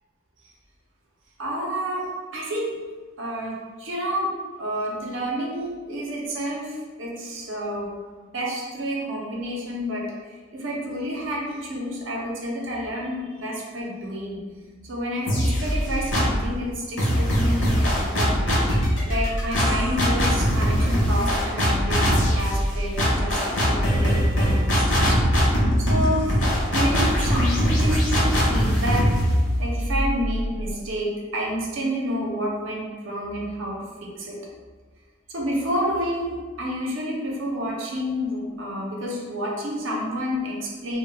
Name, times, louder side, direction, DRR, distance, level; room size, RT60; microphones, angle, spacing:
voice 1, 1.4-2.1 2.3-2.7 3.2-4.3 4.6-7.9 8.3-14.4 14.8-18.6 19.0-25.2 25.8-29.1 29.6-34.4 35.3-41.0, equal, 75° right, -3 dB, 0.6 m, -29 dB
sound 1, 15.3-16.5 17.0-30.7, equal, 65° left, 0.7 m, -22 dB
2.2 x 2.1 x 3.3 m, 1.4 s
head